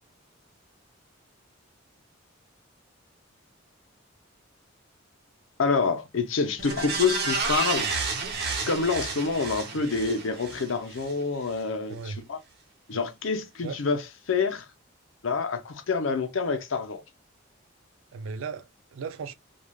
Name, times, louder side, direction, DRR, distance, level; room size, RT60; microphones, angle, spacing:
voice 1, 5.6-7.9 8.7-12.4 12.9-14.7 15.2-17.0, left 4 dB, 75° left, 0.6 m, -27 dB
sound 1, 6.6-11.1 11.5-11.6, right 4 dB, 50° right, 0.8 m, -31 dB
voice 2, 11.9-12.2 12.9-13.1 13.6-13.8 18.1-19.3, right 5 dB, 80° right, 0.4 m, -37 dB
3.2 x 2.4 x 2.2 m
head